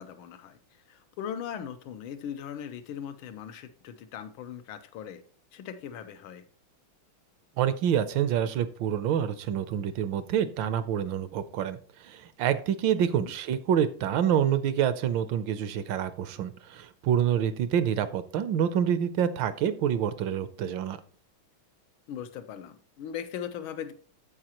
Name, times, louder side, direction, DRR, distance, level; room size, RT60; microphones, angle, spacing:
voice 1, 0.0-5.2 5.5-6.4 13.1-13.3 22.1-23.9, left 8 dB, 90° left, 9 dB, 1.6 m, -39 dB
voice 2, 7.6-21.0, right 9 dB, 75° right, 13 dB, 1.3 m, -27 dB
14.0 x 4.8 x 2.9 m, 0.43 s
omnidirectional pair, 2.2 m